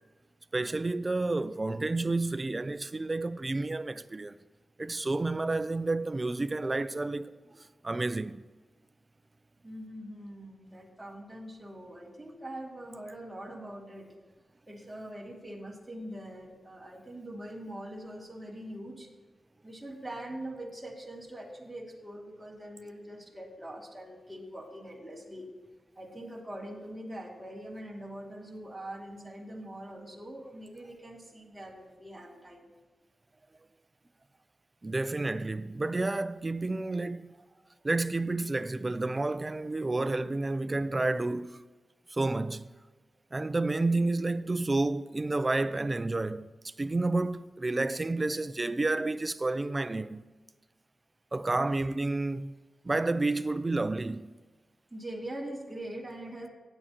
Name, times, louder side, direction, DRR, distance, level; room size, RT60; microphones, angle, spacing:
voice 1, 0.5-4.4 4.8-8.4 34.8-37.4 37.8-41.6 42.1-42.7 43.3-50.2 51.3-52.5 52.8-54.3, right 2 dB, 25° right, 0.4 m, -30 dB
voice 2, 9.6-14.1 14.7-19.1 19.6-25.5 26.0-32.7 54.9-56.5, right 1 dB, 5° right, 2.3 m, -43 dB
17.5 x 10.0 x 2.9 m
wide cardioid pair, 150°, 0 cm